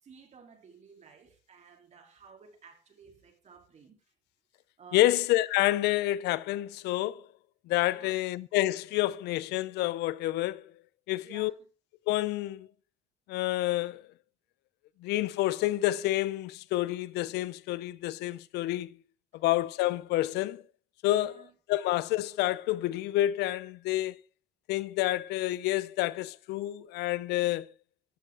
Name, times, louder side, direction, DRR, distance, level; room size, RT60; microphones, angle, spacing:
voice 1, 0.0-4.0 4.8-5.1 7.8-8.2 11.2-11.5 19.3-19.4 21.1-21.5, right 5 dB, 45° right, 3.7 m, -54 dB
voice 2, 4.9-7.2 7.7-10.6 11.1-11.5 12.1-12.7 13.3-14.0 15.0-19.0 19.4-20.6 21.0-21.3 21.7-24.2 24.7-27.7, left 16 dB, 85° left, 0.6 m, -28 dB
14.5 x 11.5 x 3.8 m
cardioid pair, 110°, 17 cm